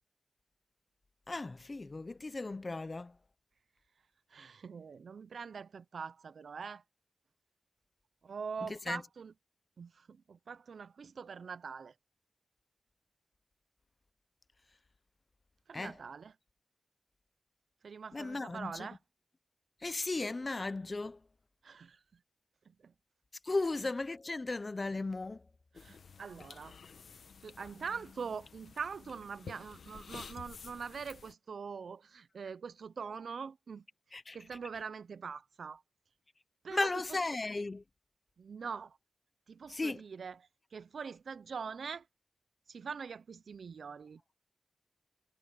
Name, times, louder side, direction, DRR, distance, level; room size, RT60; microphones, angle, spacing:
voice 1, 1.3-3.2 8.7-9.0 15.7-15.9 18.1-18.9 19.8-21.2 23.4-25.4 34.1-34.4 36.7-37.8 39.7-40.0, left 3 dB, 30° left, 0.6 m, -36 dB
voice 2, 4.3-6.8 8.2-9.3 9.8-11.9 15.7-16.3 17.8-19.0 21.6-22.0 22.7-22.9 25.7-26.8 27.1-33.8 34.3-35.8 36.6-36.9 38.4-39.0 39.5-42.1 42.7-44.2, right 5 dB, 80° right, 0.5 m, -43 dB
sound 1, 25.7-31.3, left 6 dB, 85° left, 1.0 m, -51 dB
wide cardioid pair, 130°, 0 cm